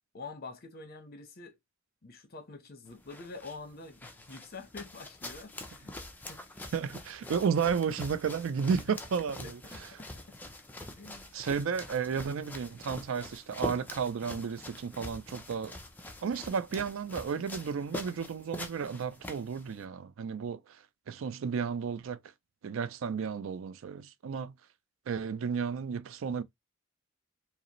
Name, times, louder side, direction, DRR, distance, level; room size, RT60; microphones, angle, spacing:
voice 1, 0.1-1.6 2.0-5.9 6.3-6.7 9.4-10.4 11.0-11.3, left 3 dB, 45° left, 0.8 m, -47 dB
sound 1, 2.9-19.8, left 1 dB, 10° left, 0.5 m, -44 dB
voice 2, 6.7-9.9 11.3-15.7 16.2-20.8 21.1-22.2 22.6-24.5 25.1-26.4, right 6 dB, 70° right, 0.4 m, -33 dB
4.9 x 2.0 x 3.0 m
head